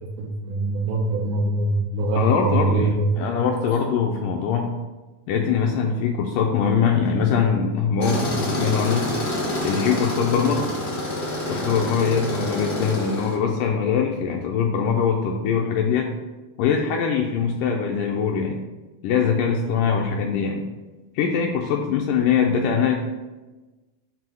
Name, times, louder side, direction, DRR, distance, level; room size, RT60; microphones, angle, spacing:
voice 1, 0.0-3.3, right 2 dB, 85° right, -2 dB, 2.4 m, -23 dB
voice 2, 2.2-4.7 5.3-9.1 9.6-10.7 11.5-16.1 16.6-18.6 19.0-20.6 21.2-23.0, left 6 dB, 80° left, 1 dB, 1.9 m, -22 dB
Tools, 8.0-13.4, left 1 dB, 60° left, 1.0 m, -27 dB
7.6 x 2.7 x 5.3 m, 1.2 s
omnidirectional pair, 4.1 m